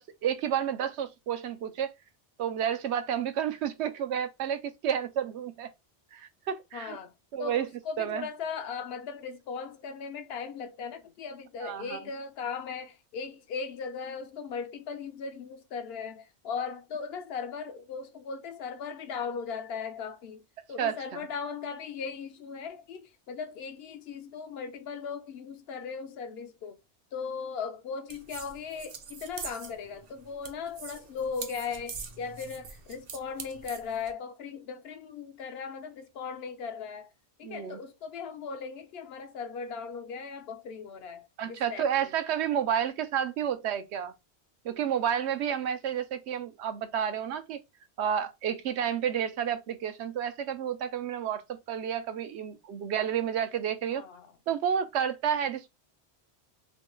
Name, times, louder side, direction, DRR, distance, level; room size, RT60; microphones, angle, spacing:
voice 1, 0.0-1.9 2.4-5.7 6.1-7.0 7.3-7.7 8.0-8.3 11.6-12.0 20.8-21.2 37.4-37.8 41.4-44.1 44.6-47.6 48.0-54.1 54.5-55.7, right 9 dB, 80° right, 0.9 m, -30 dB
voice 2, 6.7-7.1 7.4-20.4 20.7-26.8 27.1-37.1 37.4-41.9 53.9-54.3, left 5 dB, 70° left, 0.8 m, -38 dB
sound 1, 28.1-34.1, right 5 dB, 50° right, 0.5 m, -44 dB
3.1 x 2.2 x 3.0 m
omnidirectional pair, 1.1 m